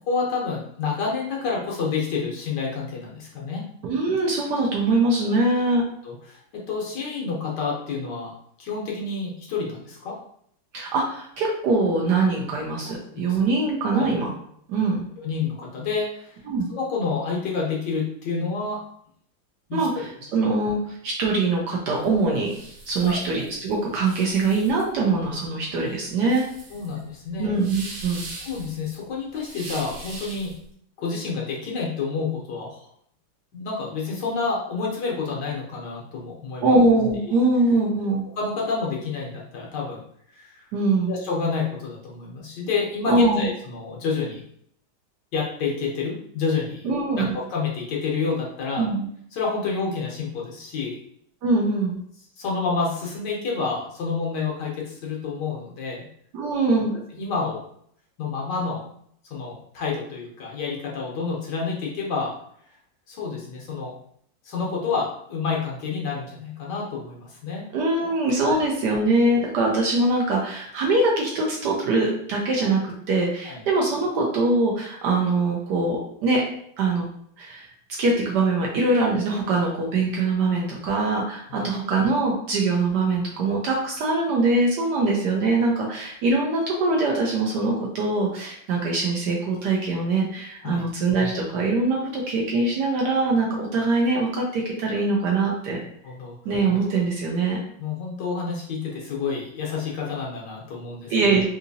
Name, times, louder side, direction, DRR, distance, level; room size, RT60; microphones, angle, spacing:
voice 1, 0.1-3.6 5.3-5.4 6.0-8.3 8.6-10.1 13.1-13.4 13.9-14.1 15.2-16.4 16.7-18.8 19.7-20.1 23.0-23.2 26.7-27.5 28.4-30.5 31.0-32.9 33.5-36.7 37.3-37.4 38.4-40.0 40.3-40.6 41.1-44.4 45.3-46.9 47.2-48.9 49.3-51.0 52.4-56.1 57.1-57.6 58.2-58.8 59.3-62.3 63.1-63.9 64.4-67.6 68.4-68.6 73.4-73.6 81.5-81.7 90.6-90.9 96.0-96.3 97.8-101.1, left 4 dB, 65° left, -2 dB, 1.3 m, -29 dB
voice 2, 3.8-5.8 10.7-14.3 14.7-15.0 16.5-16.7 19.7-22.5 22.9-26.5 27.4-28.3 36.6-38.2 40.7-41.1 43.1-43.5 46.8-47.3 48.8-49.1 51.4-52.0 56.3-56.9 67.7-76.4 76.8-77.0 77.4-77.7 78.0-95.8 96.4-97.6 101.1-101.4, right 3 dB, 70° right, -2 dB, 1.1 m, -23 dB
sound 1, 22.0-30.6, right 2 dB, 90° right, 1.7 m, -41 dB
3.8 x 2.7 x 2.6 m, 0.67 s
omnidirectional pair, 2.2 m